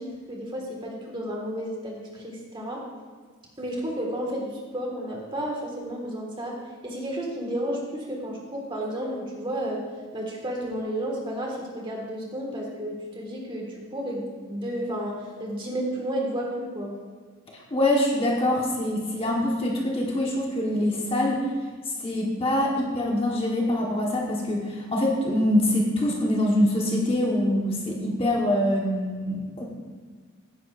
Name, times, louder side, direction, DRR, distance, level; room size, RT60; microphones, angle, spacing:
voice 1, 0.0-2.8 3.6-6.6 6.8-9.8 10.1-14.2 14.5-16.9, right 1 dB, 20° right, -2 dB, 1.8 m, -32 dB
voice 2, 17.7-21.5 22.0-29.6, left 1 dB, 25° left, -2 dB, 1.3 m, -24 dB
15.0 x 10.0 x 2.5 m, 1.5 s
head